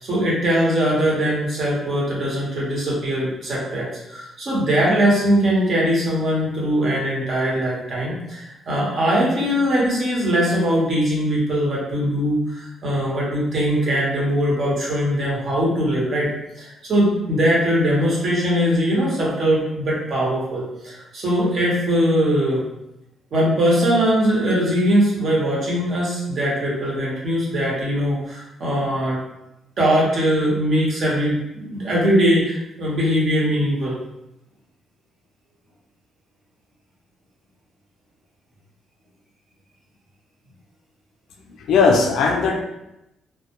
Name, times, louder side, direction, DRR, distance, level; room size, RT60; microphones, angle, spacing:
voice 1, 0.0-16.3 16.6-22.6 23.3-29.2 29.8-34.0, equal, 55° right, -5 dB, 1.0 m, -21 dB
voice 2, 41.6-42.6, left 4 dB, 75° left, 2 dB, 0.4 m, -17 dB
2.2 x 2.0 x 2.9 m, 0.89 s
cardioid pair, 90°, 0 cm